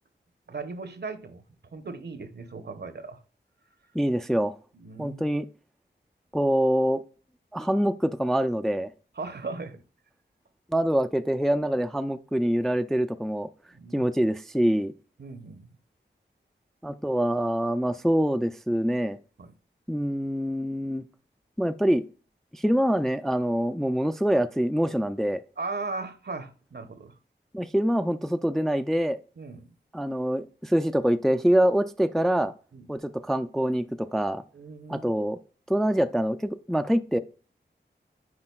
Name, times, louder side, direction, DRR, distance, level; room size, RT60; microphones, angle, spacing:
voice 1, 0.5-1.4 1.7-3.2 4.7-5.3 9.2-9.8 13.7-14.1 15.2-15.7 19.4-19.5 25.6-27.1 29.4-29.7 32.7-32.9 34.5-35.1, right 3 dB, 60° right, 0.8 m, -37 dB
voice 2, 3.9-4.5 5.0-5.5 6.3-7.0 7.5-8.9 10.7-13.5 13.9-14.9 16.8-19.2 19.9-21.0 21.6-22.0 22.5-25.4 27.5-29.2 29.9-32.5 32.9-34.4 34.9-35.4 35.7-37.2, equal, ahead, 0.3 m, -25 dB
9.6 x 4.3 x 2.3 m
wide cardioid pair, 65°, 19 cm